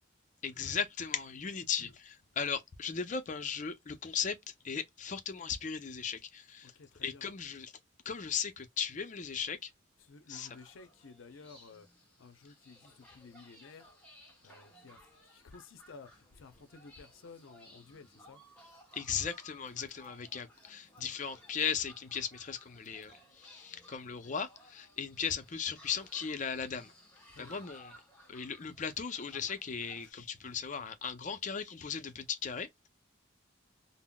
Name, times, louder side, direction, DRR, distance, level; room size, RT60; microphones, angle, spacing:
voice 1, 0.4-4.4 4.6-6.7 7.0-7.7 8.1-9.7 10.3-10.5 18.9-26.9 27.4-28.0 28.3-32.7, left 7 dB, 40° left, 0.5 m, -37 dB
voice 2, 6.6-7.2 10.0-11.9 12.2-13.9 14.4-18.4 27.3-27.6, left 4 dB, 90° left, 0.6 m, -54 dB
sound 1, 10.3-30.1, equal, 10° left, 1.1 m, -59 dB
3.7 x 2.0 x 2.2 m
head